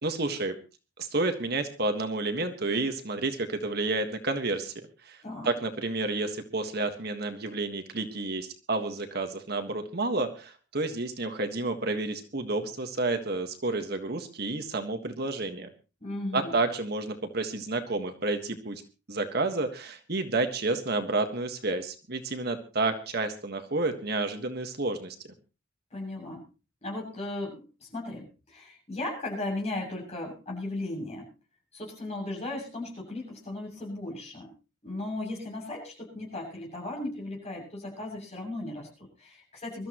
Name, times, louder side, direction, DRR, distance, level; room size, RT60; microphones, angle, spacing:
voice 1, 0.0-0.6 1.0-4.7 5.0-5.2 5.4-15.7 16.3-18.8 19.1-25.1, right 2 dB, 55° right, 7 dB, 1.6 m, -30 dB
voice 2, 16.0-16.5 25.9-26.5 26.8-31.3 31.7-34.5 34.8-39.9, left 2 dB, 35° left, -1 dB, 7.4 m, -36 dB
24.0 x 13.5 x 3.1 m, 0.32 s
head